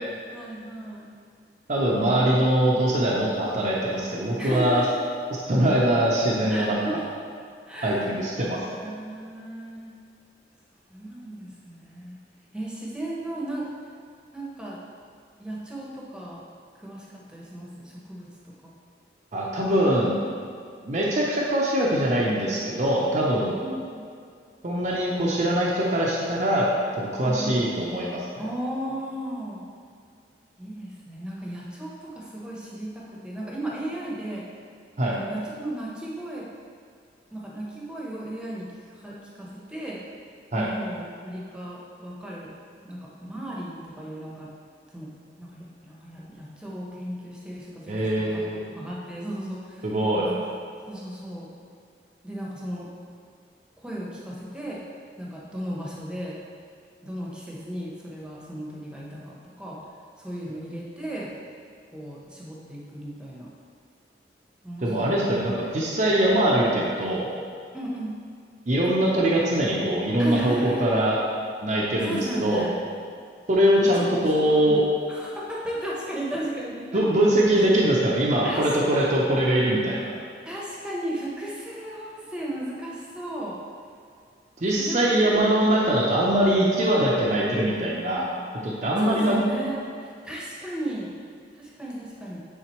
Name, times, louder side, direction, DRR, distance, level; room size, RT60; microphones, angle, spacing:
voice 1, 0.3-1.1 1.9-2.4 4.4-5.0 6.5-7.0 7.7-8.1 8.7-9.9 10.9-12.2 12.5-13.7 14.3-14.8 15.4-16.4 16.8-18.7 23.6-24.1 27.2-27.5 28.4-29.6 30.6-34.4 35.1-36.5 37.3-38.7 39.0-40.0 40.5-42.6 42.8-44.5 44.9-45.1 45.4-49.9 50.2-50.4 50.9-51.5 52.2-52.9 53.8-54.8 55.2-56.4 57.0-59.8 60.2-61.3 61.9-63.5 64.6-65.2 67.7-68.2 70.2-71.0 72.0-72.8 73.8-74.2 74.5-74.8 75.1-77.0 77.5-77.7 78.4-78.8 80.4-83.6 84.8-85.4 89.0-91.1 91.5-92.4, right 1 dB, 5° right, -5 dB, 0.9 m, -35 dB
voice 2, 1.7-4.8 5.5-6.8 7.8-8.6 19.3-20.1 20.8-23.6 24.6-26.6 26.9-28.2 35.0-35.1 40.5-40.7 47.9-48.6 49.8-50.3 64.8-67.3 68.7-71.2 71.6-72.7 73.5-74.8 76.9-80.1 84.6-88.3 88.6-89.4, right 1 dB, 40° right, -5 dB, 0.6 m, -22 dB
8.9 x 3.8 x 3.1 m, 2.2 s
head